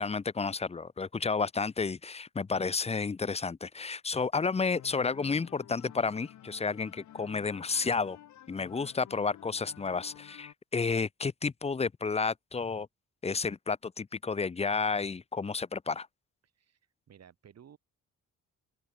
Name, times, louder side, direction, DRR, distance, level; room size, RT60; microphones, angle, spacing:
voice 1, 0.0-8.2 8.5-12.9 13.2-16.1, left 4 dB, 20° left, 0.7 m, -31 dB
sound 1, 4.7-10.5, left 12 dB, 70° left, 2.2 m, -52 dB
voice 2, 17.1-17.8, right 8 dB, 55° right, 7.0 m, -55 dB
open air
cardioid pair, 90°, 30 cm